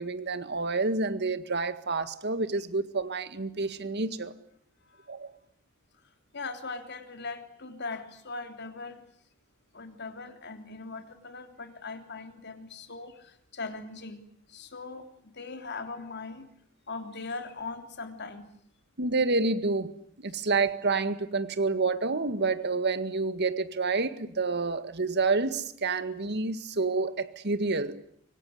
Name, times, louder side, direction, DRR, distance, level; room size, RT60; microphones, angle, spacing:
voice 1, 0.0-4.3 5.1-5.3 19.0-19.9 20.2-28.0, right 3 dB, 55° right, 12 dB, 1.9 m, -28 dB
voice 2, 6.3-9.0 9.7-14.2 14.5-15.1 15.3-16.5 16.9-18.5, left 3 dB, 55° left, 8 dB, 3.4 m, -40 dB
25.0 x 24.5 x 9.6 m, 0.67 s
head